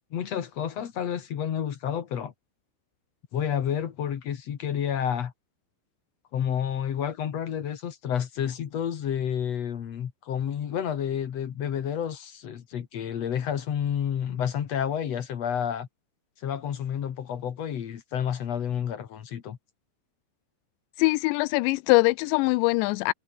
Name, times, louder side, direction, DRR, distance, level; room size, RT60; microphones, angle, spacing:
voice 1, 0.1-2.3 3.3-5.3 6.3-15.9 16.4-19.6, left 9 dB, 60° left, 1.7 m, -30 dB
voice 2, 21.0-23.1, left 23 dB, 85° left, 2.6 m, -22 dB
omnidirectional pair, 5.5 m